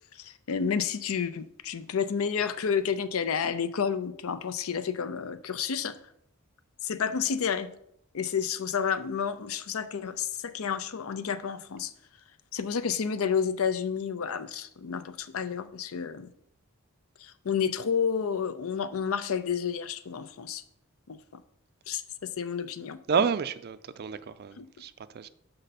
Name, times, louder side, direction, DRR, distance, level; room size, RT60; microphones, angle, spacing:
voice 1, 0.1-6.0 6.8-7.7 8.1-11.9 12.5-16.3 17.2-20.6 21.1-21.4 21.9-23.0 24.6-24.7, left 7 dB, 70° left, 0.5 m, -30 dB
voice 2, 23.1-25.3, right 6 dB, 45° right, 0.4 m, -30 dB
6.5 x 5.5 x 4.1 m
head